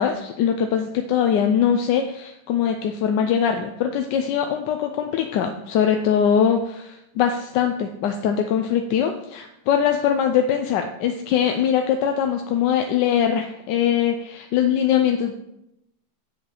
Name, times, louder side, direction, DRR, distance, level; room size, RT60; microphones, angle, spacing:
voice 1, 0.0-15.3, left 8 dB, 80° left, 5 dB, 1.2 m, -22 dB
7.8 x 5.1 x 4.9 m, 0.84 s
omnidirectional pair, 1.9 m